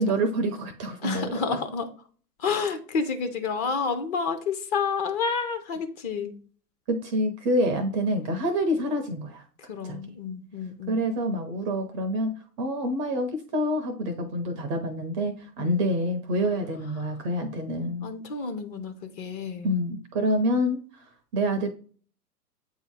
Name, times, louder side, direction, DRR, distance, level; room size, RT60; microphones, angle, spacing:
voice 1, 0.0-1.6 6.9-9.4 9.8-10.0 10.9-12.3 12.6-18.1 19.6-21.7, equal, 20° right, 0.5 m, -27 dB
voice 2, 1.0-1.9 2.4-6.3 9.6-11.0 15.6-15.8 18.0-19.7, left 5 dB, 25° left, 0.6 m, -30 dB
7.9 x 2.8 x 4.7 m
figure-of-eight pair, 110°, 48 cm